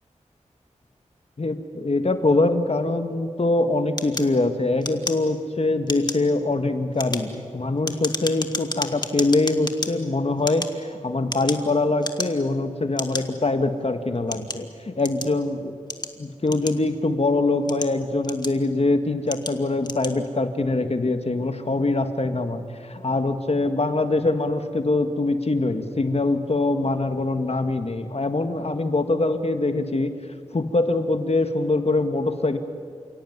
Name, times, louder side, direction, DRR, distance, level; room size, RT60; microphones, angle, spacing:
voice 1, 1.4-15.8 16.2-30.1 30.5-32.6, left 2 dB, 55° left, 7 dB, 1.9 m, -23 dB
sound 1, 4.0-5.5 5.8-6.3 6.8-9.9 10.4-11.7 12.0-12.5 13.0-13.2 13.9-15.4 15.9-17.1 17.5-18.7 19.3-19.6 19.8-20.2, left 2 dB, 35° left, 2.0 m, -31 dB
29.5 x 17.0 x 9.5 m, 2.2 s
cardioid pair, 45°, 13 cm